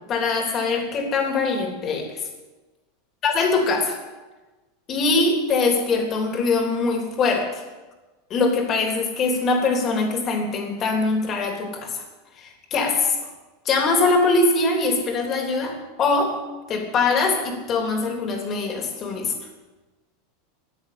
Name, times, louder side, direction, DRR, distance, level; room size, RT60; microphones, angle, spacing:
voice 1, 0.1-2.2 3.2-4.0 4.9-7.6 8.3-12.0 12.4-13.2 13.6-16.3 16.7-19.3, left 3 dB, 30° left, 2 dB, 3.4 m, -22 dB
14.5 x 9.6 x 8.8 m, 1.2 s
supercardioid pair, 150°, 0 cm